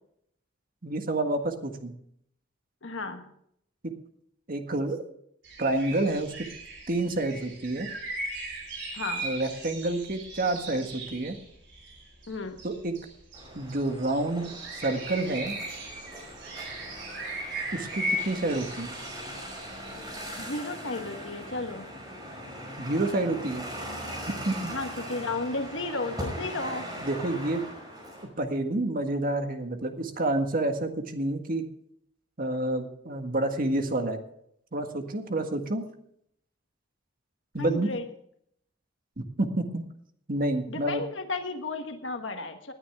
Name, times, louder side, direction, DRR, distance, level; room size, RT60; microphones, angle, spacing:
voice 1, 0.8-1.9 3.8-3.9 4.5-5.0 5.6-6.5 6.9-7.9 9.2-11.4 12.6-13.0 13.5-15.6 17.7-18.9 22.8-23.6 24.5-24.7 27.0-27.6 28.4-31.7 32.4-34.2 34.7-35.8 37.5-37.9 39.2-39.8 40.3-41.0, right 2 dB, 50° right, 6 dB, 1.6 m, -29 dB
voice 2, 2.8-3.3 8.9-9.3 12.3-12.6 20.4-21.9 24.7-27.0 37.6-38.0 40.7-42.7, left 3 dB, 70° left, 6 dB, 1.4 m, -33 dB
sound 1, 5.4-20.4, right 1 dB, 70° right, 5.6 m, -38 dB
sound 2, 13.3-28.2, equal, 20° right, 5.2 m, -40 dB
19.5 x 10.0 x 3.6 m, 0.71 s
head